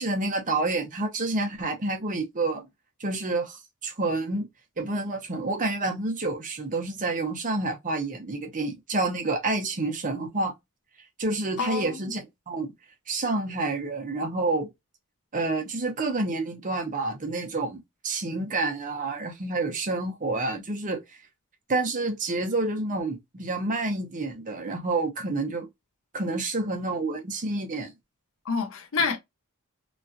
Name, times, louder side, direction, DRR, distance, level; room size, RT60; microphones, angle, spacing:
voice 1, 0.0-2.6 3.0-4.5 4.8-10.5 11.2-12.7 13.1-14.7 15.3-21.0 21.7-25.7 26.1-27.9, right 2 dB, 35° right, 0.7 m, -28 dB
voice 2, 11.6-12.1 28.4-29.2, left 5 dB, 65° left, 0.6 m, -28 dB
3.1 x 2.4 x 2.6 m
head